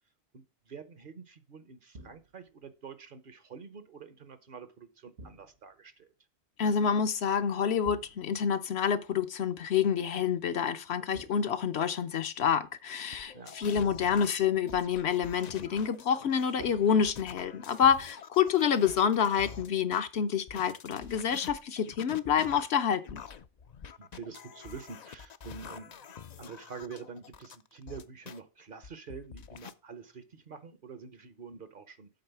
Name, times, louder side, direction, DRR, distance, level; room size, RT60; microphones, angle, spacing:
voice 1, 0.3-6.1 13.3-13.6 24.0-32.1, right 5 dB, 50° right, 0.9 m, -47 dB
sound 1, 1.9-2.6 5.2-5.9 7.8-8.5 11.1-12.1 13.8-14.3 16.6-17.7, right 2 dB, 70° right, 1.4 m, -51 dB
voice 2, 6.6-23.2, left 7 dB, 65° left, 0.9 m, -28 dB
sound 2, 13.1-20.0 20.5-28.4 28.8-29.7, left 7 dB, 50° left, 0.5 m, -47 dB
8.0 x 4.1 x 6.8 m
omnidirectional pair, 1.2 m